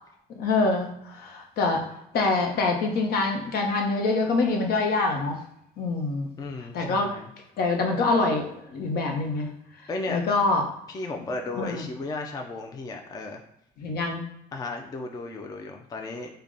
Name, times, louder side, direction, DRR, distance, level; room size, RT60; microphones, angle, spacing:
voice 1, 0.3-1.8 2.1-5.4 5.8-6.3 6.7-7.1 7.6-9.5 10.1-10.6 11.6-11.8 13.8-14.2, left 3 dB, 65° left, 3 dB, 0.8 m, -25 dB
voice 2, 6.4-7.3 9.9-10.2 10.9-13.4 14.5-16.3, left 2 dB, 20° left, 3 dB, 0.4 m, -34 dB
3.4 x 2.2 x 3.8 m, 0.78 s
cardioid pair, 110°, 17 cm